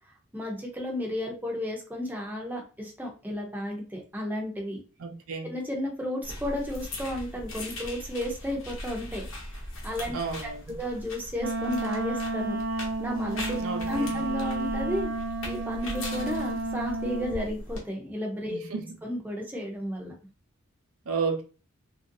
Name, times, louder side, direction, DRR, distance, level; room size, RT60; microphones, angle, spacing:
voice 1, 0.3-4.8 5.4-9.2 9.8-13.6 13.9-15.1 15.4-18.6 19.0-20.1, left 1 dB, 10° right, 0.6 m, -33 dB
voice 2, 5.0-5.5 10.1-10.6 13.6-14.2 18.5-18.9 21.1-21.4, right 5 dB, 90° right, 0.6 m, -32 dB
sound 1, 6.2-17.8, left 1 dB, 70° left, 0.9 m, -40 dB
Wind instrument woodwind instrument, 11.4-17.5, right 2 dB, 50° right, 0.3 m, -31 dB
3.0 x 2.5 x 2.7 m
head